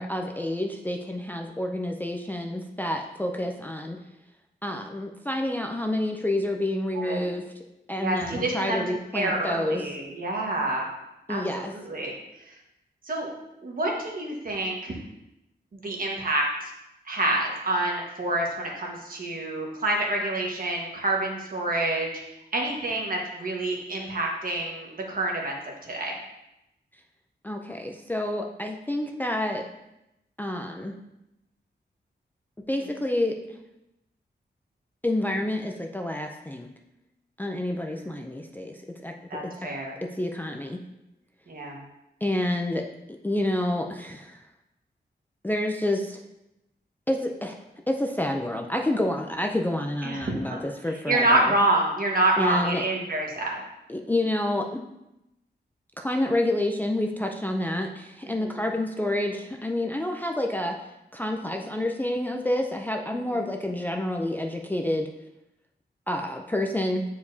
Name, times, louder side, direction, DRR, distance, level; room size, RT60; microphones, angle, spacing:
voice 1, 0.0-4.0 4.6-7.4 7.9-9.8 11.3-11.7 27.4-29.6 30.4-30.9 32.7-33.6 35.0-36.7 37.4-39.1 40.1-40.8 42.2-42.8 43.2-44.4 45.4-46.2 47.1-47.5 47.9-51.5 52.4-52.8 53.9-54.8 56.0-60.8 61.1-65.1 66.1-67.0, left 1 dB, 10° left, 2 dB, 0.4 m, -28 dB
voice 2, 8.0-8.8 9.1-10.9 11.3-12.1 13.0-13.3 13.6-15.0 15.8-16.7 17.1-22.1 22.5-26.1 37.7-38.1 39.3-39.9 41.5-41.8 50.0-50.2 50.5-50.6 51.1-53.6, right 2 dB, 55° right, -1 dB, 1.4 m, -27 dB
8.7 x 4.8 x 2.7 m, 0.89 s
wide cardioid pair, 145°, 18 cm